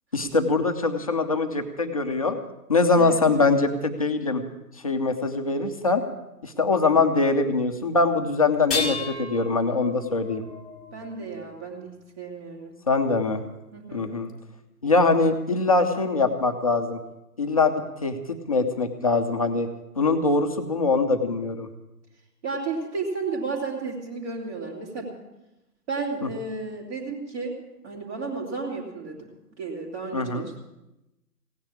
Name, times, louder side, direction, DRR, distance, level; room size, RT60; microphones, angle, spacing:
voice 1, 0.1-2.4 2.7-4.4 4.8-6.0 6.4-10.4 12.9-13.4 13.9-14.3 14.8-17.0 17.4-19.7 20.0-21.7 30.1-30.5, left 3 dB, 20° left, 5 dB, 0.6 m, -23 dB
sound 1, 8.5-11.8 13.4-13.5 14.3-14.4, left 4 dB, ahead, 1.2 m, -34 dB
voice 2, 10.9-12.7 13.7-14.1 22.4-25.1 25.9-27.6 27.8-29.3 29.6-30.6, right 4 dB, 45° right, -3 dB, 3.2 m, -33 dB
16.5 x 10.0 x 7.0 m, 0.94 s
figure-of-eight pair, 145°, 49 cm